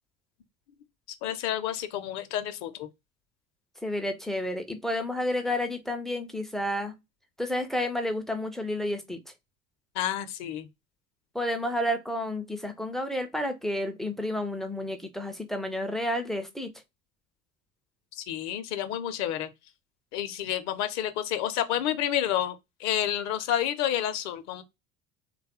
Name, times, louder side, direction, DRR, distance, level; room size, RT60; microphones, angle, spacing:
voice 1, 1.2-2.9 9.9-10.7 18.2-19.5 20.1-24.6, left 11 dB, 40° left, 0.6 m, -30 dB
voice 2, 3.8-6.9 7.4-9.2 11.3-16.7, left 1 dB, ahead, 0.3 m, -30 dB
3.3 x 2.3 x 4.1 m
figure-of-eight pair, 65°, 42 cm